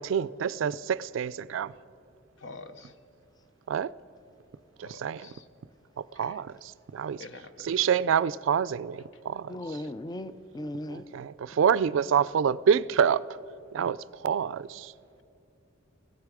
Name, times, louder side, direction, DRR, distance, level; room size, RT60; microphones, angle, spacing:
voice 1, 0.0-1.7 3.7-3.9 4.8-5.3 6.2-6.5 6.9-7.2 7.6-9.6 10.9-13.3 13.7-14.0 14.2-14.9, right 7 dB, 70° right, 0.3 m, -27 dB
voice 2, 2.4-2.9 4.8-5.4 6.1-6.4 7.2-7.7, left 3 dB, 65° left, 0.8 m, -46 dB
voice 3, 9.5-11.1, left 1 dB, 20° left, 0.4 m, -37 dB
17.5 x 15.0 x 4.9 m
head